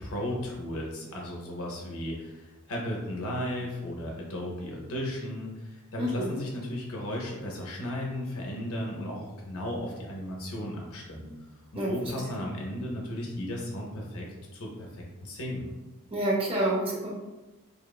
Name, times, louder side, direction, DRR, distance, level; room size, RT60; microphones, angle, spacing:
voice 1, 0.0-11.3 11.7-14.3 14.5-15.7, left 1 dB, 65° left, -1 dB, 0.5 m, -35 dB
voice 2, 6.0-6.3 11.7-12.4 16.1-17.1, right 1 dB, 25° right, -2 dB, 0.5 m, -29 dB
2.9 x 2.0 x 2.3 m, 1.1 s
head